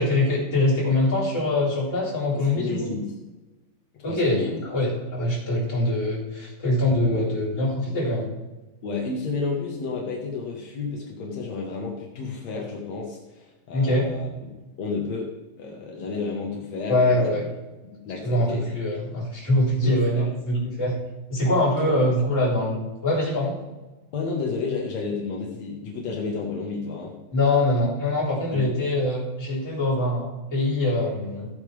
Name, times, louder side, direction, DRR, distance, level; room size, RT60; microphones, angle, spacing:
voice 1, 0.0-2.9 4.0-8.3 13.7-14.1 16.9-17.4 18.2-21.0 21.3-23.5 27.3-31.5, left 1 dB, 15° left, -7 dB, 3.6 m, -23 dB
voice 2, 2.3-3.1 4.1-4.6 7.1-7.3 8.8-15.3 15.6-17.4 17.9-18.6 19.8-20.3 21.8-22.0 24.1-27.1 28.5-28.6, left 4 dB, 80° left, -1 dB, 1.5 m, -31 dB
15.5 x 8.7 x 3.4 m, 1.1 s
omnidirectional pair, 5.4 m